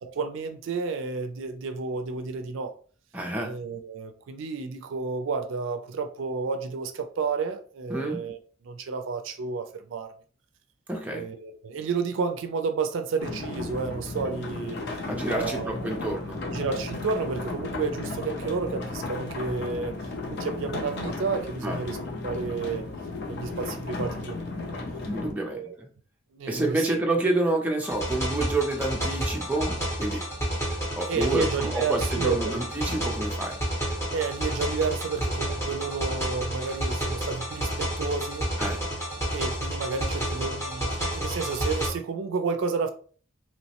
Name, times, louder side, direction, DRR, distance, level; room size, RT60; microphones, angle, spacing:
voice 1, 0.0-2.7 3.4-8.4 8.6-10.1 11.1-14.8 15.3-16.0 16.5-20.0 20.3-22.0 22.2-22.9 23.3-24.7 25.4-25.8 26.3-27.0 31.1-32.6 34.1-38.5 39.3-42.9, right 5 dB, 70° right, 0.3 m, -31 dB
voice 2, 3.1-3.5 7.9-8.2 10.9-11.3 15.1-16.4 21.6-21.8 25.1-25.9 26.5-30.2 31.0-33.6 38.6-38.8, right 2 dB, 10° right, 0.4 m, -28 dB
sound 1, 13.2-25.3, left 3 dB, 55° left, 0.5 m, -34 dB
sound 2, 27.8-41.9, equal, 15° left, 0.8 m, -30 dB
3.0 x 2.0 x 2.8 m
head